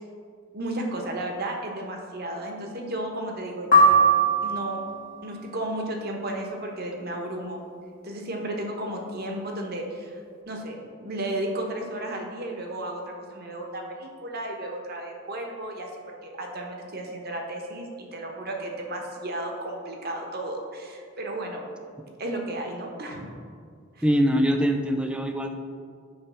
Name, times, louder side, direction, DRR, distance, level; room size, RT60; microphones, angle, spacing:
voice 1, 0.5-4.0 4.4-4.8 5.2-7.6 8.0-10.2 10.5-15.9 16.2-21.6 22.2-23.3 24.0-24.1, right 1 dB, 45° right, 1 dB, 1.0 m, -33 dB
sound 1, 3.7-5.0, right 2 dB, 40° left, 1.0 m, -19 dB
voice 2, 24.0-25.6, equal, 5° right, 5 dB, 0.4 m, -23 dB
8.7 x 3.3 x 6.1 m, 2.1 s
head